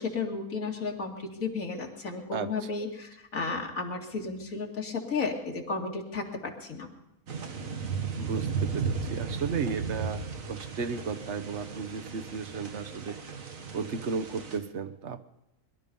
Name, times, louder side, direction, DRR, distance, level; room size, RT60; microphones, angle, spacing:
voice 1, 0.0-6.9, left 4 dB, 70° left, 2 dB, 2.6 m, -33 dB
sound 1, 7.3-14.6, right 5 dB, 70° right, 1.9 m, -35 dB
voice 2, 8.2-13.2 13.7-15.2, right 5 dB, 55° right, 10 dB, 1.3 m, -34 dB
22.0 x 12.5 x 5.4 m, 0.94 s
omnidirectional pair, 1.5 m